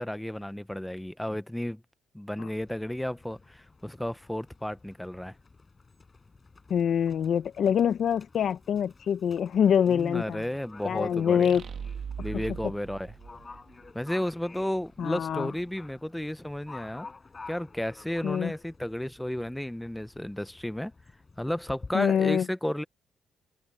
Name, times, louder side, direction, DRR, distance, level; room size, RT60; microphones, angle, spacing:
voice 1, 0.0-1.8 2.1-5.3 9.9-11.6 12.2-13.1 13.9-17.1 17.5-20.9 21.4-22.8, left 1 dB, 5° left, 0.9 m, -33 dB
Livestock farm animals working animals, 2.6-21.9, left 3 dB, 25° left, 5.8 m, -51 dB
voice 2, 6.7-10.4 10.8-11.6 15.0-15.5 18.2-18.5 21.9-22.4, left 8 dB, 60° left, 0.9 m, -25 dB
sound 1, 11.4-14.1, right 7 dB, 55° right, 2.6 m, -39 dB
cardioid pair, 90°, 0 cm